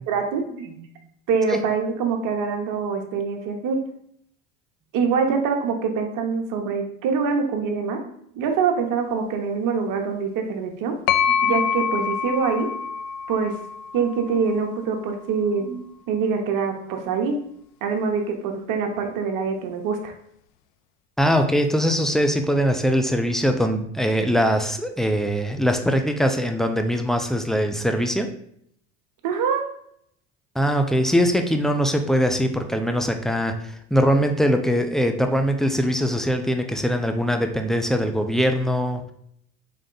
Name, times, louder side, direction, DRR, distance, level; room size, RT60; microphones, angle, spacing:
voice 1, 0.1-0.8 1.3-3.8 4.9-10.9 11.4-12.7 13.3-13.5 13.9-17.4 17.8-20.1 29.2-29.6, right 5 dB, 55° right, 4 dB, 1.0 m, -24 dB
sound 1, 11.1-14.8, left 7 dB, 65° left, 0.5 m, -26 dB
voice 2, 21.2-28.3 30.6-39.1, equal, ahead, 5 dB, 0.4 m, -22 dB
3.5 x 3.3 x 3.8 m, 0.69 s
hypercardioid pair, 80°, 39 cm